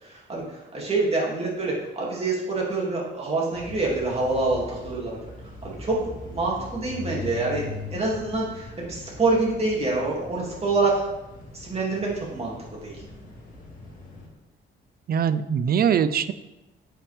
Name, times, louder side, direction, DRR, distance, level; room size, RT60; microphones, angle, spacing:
voice 1, 0.0-5.2 5.6-6.0 6.2-7.6 7.9-11.0 11.5-13.0, right 3 dB, 30° right, -4 dB, 2.7 m, -26 dB
sound 1, 3.5-14.3, left 3 dB, 40° left, 2.4 m, -41 dB
voice 2, 15.1-16.3, right 8 dB, 50° right, 14 dB, 0.5 m, -22 dB
8.6 x 5.6 x 3.5 m, 0.97 s
cardioid pair, 90°, 20 cm